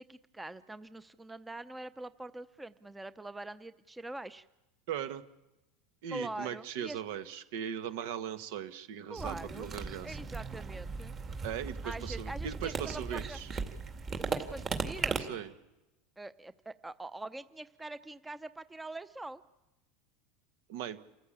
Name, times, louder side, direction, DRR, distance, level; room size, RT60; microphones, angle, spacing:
voice 1, 0.0-4.4 6.1-7.0 9.1-9.7 10.0-11.2 11.8-13.4 14.2-15.2 16.2-19.4, right 2 dB, 10° right, 14 dB, 0.7 m, -44 dB
voice 2, 4.9-5.2 6.0-10.2 11.4-13.5 15.3-15.5 20.7-21.0, right 9 dB, 75° right, 11 dB, 1.6 m, -39 dB
sound 1, 9.2-15.2, right 5 dB, 30° right, 2.3 m, -37 dB
28.5 x 14.5 x 8.8 m, 0.99 s
supercardioid pair, 125°, 0 cm